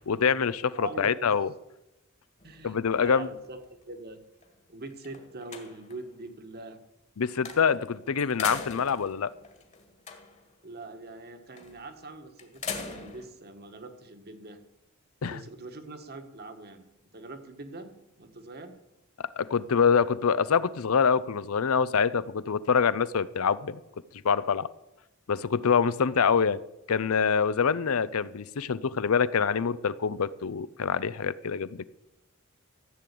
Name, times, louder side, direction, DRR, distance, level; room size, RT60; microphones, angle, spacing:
voice 1, 0.0-1.5 2.6-3.3 7.2-9.3 15.2-15.4 19.4-23.8 24.2-24.7 25.3-26.6 26.9-31.9, left 6 dB, 85° left, 17 dB, 0.6 m, -25 dB
voice 2, 0.7-1.3 2.4-4.2 4.7-6.8 10.6-14.6 15.2-16.9 17.1-18.8, right 2 dB, 50° right, 7 dB, 1.6 m, -43 dB
sound 1, 2.4-3.9 4.4-4.5 4.9-6.1 7.5-7.9 8.2-10.5 11.6-11.9 12.4-13.3, left 5 dB, 35° left, 1.8 m, -40 dB
14.5 x 7.8 x 8.4 m, 0.93 s
head